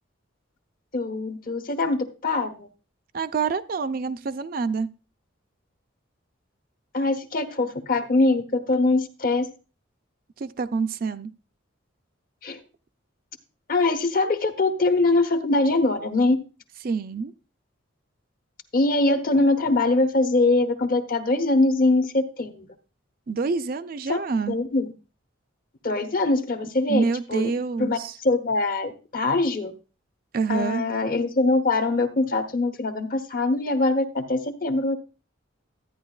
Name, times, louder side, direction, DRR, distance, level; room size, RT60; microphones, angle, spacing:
voice 1, 0.9-2.7 6.9-9.5 12.4-12.6 13.7-16.4 18.7-22.7 24.1-24.2 24.5-24.9 25.8-27.5 27.8-29.7 30.5-35.0, left 2 dB, 45° left, 0.9 m, -23 dB
voice 2, 3.1-4.9 10.4-11.3 16.8-17.3 23.3-24.6 26.9-28.1 30.3-30.8, right 5 dB, 45° right, 0.4 m, -27 dB
12.5 x 9.4 x 2.4 m
head